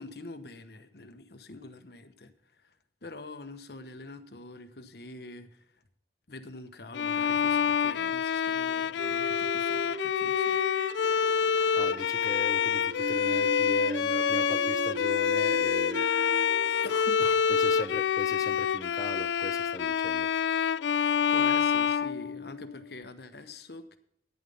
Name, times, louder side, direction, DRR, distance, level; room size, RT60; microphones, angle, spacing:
voice 1, 0.0-2.8 3.0-5.8 6.3-10.6 16.8-17.4 21.3-24.0, left 2 dB, 65° left, 9 dB, 1.1 m, -45 dB
Bowed string instrument, 6.9-22.8, left 7 dB, 90° left, 0.3 m, -27 dB
sound 1, 9.0-18.2, right 2 dB, 45° right, 0.5 m, -38 dB
voice 2, 11.8-16.1 17.5-20.3, left 1 dB, 20° left, 6 dB, 0.7 m, -39 dB
11.0 x 9.9 x 5.5 m, 0.69 s
head